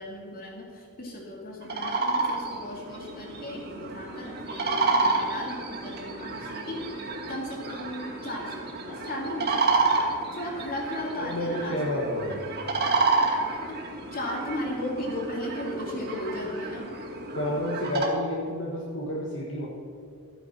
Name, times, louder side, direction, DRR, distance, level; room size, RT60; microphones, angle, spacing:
voice 1, 0.0-6.8 7.3-9.6 10.3-12.0 13.7-13.8 14.1-16.9, left 1 dB, 40° left, -1 dB, 2.8 m, -35 dB
sound 1, 1.6-18.1, right 3 dB, 45° right, 2.2 m, -30 dB
voice 2, 11.2-12.4 17.3-19.7, left 1 dB, 60° left, -3 dB, 1.6 m, -30 dB
14.0 x 9.3 x 5.9 m, 2.4 s
head